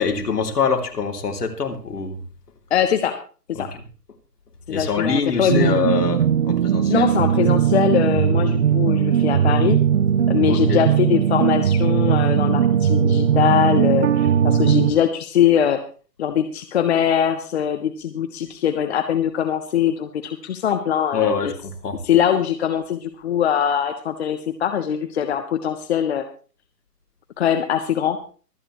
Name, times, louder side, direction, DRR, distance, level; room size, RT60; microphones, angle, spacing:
voice 1, 0.0-2.2 3.6-3.8 4.7-7.1 10.5-10.8 21.1-22.0, left 5 dB, 70° left, 4 dB, 3.1 m, -24 dB
voice 2, 2.7-3.2 3.5-3.7 4.7-5.8 6.9-9.8 10.3-15.8 16.2-21.5 22.0-26.2 27.4-28.2, left 9 dB, 40° left, 8 dB, 1.2 m, -22 dB
sound 1, 5.5-14.9, right 8 dB, 45° right, 0.6 m, -19 dB
24.0 x 9.0 x 3.1 m, 0.39 s
figure-of-eight pair, 140°, 48 cm